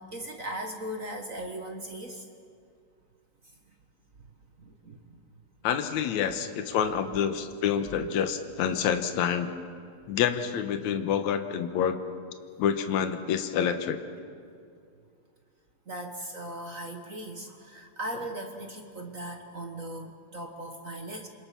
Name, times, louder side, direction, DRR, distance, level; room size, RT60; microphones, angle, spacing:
voice 1, 0.0-2.2 4.6-5.2 6.3-6.4 15.9-21.3, right 1 dB, 40° right, 3 dB, 1.2 m, -38 dB
voice 2, 5.6-9.5 10.1-12.0 12.6-14.0, left 8 dB, 75° left, 8 dB, 2.4 m, -27 dB
28.0 x 25.5 x 5.9 m, 2.3 s
omnidirectional pair, 3.4 m